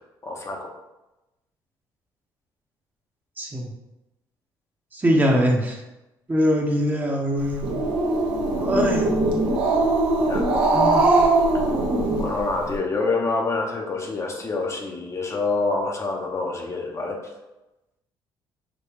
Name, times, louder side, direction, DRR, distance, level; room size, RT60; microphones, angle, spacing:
voice 1, 0.2-0.7 10.2-10.4 11.5-11.6 12.2-17.2, left 3 dB, 35° left, 1 dB, 0.8 m, -27 dB
voice 2, 3.4-3.7 4.9-5.8 6.3-7.7 8.6-9.2 10.7-11.3, equal, 20° right, 0 dB, 0.9 m, -22 dB
Growling, 7.4-12.7, right 2 dB, 80° right, 1.0 m, -21 dB
5.1 x 2.2 x 4.7 m, 1.0 s
cardioid pair, 100°, 9 cm